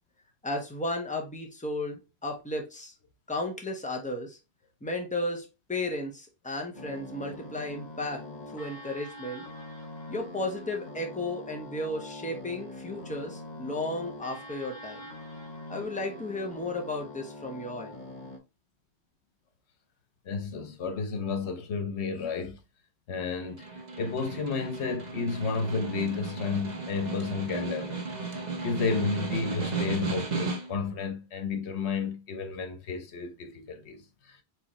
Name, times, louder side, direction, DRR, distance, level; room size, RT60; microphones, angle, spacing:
voice 1, 0.4-2.9 3.3-4.4 4.8-8.2 8.5-9.4 10.1-15.1 15.7-18.0, left 2 dB, 5° left, 0.9 m, -34 dB
sound 1, 6.7-18.4, left 2 dB, 45° left, 1.1 m, -43 dB
voice 2, 20.3-22.6 23.1-23.7 24.0-28.0 28.5-34.4, left 5 dB, 85° left, 1.1 m, -32 dB
Snare drum, 23.4-30.9, right 3 dB, 45° right, 1.1 m, -34 dB
4.5 x 3.9 x 2.9 m
omnidirectional pair, 1.1 m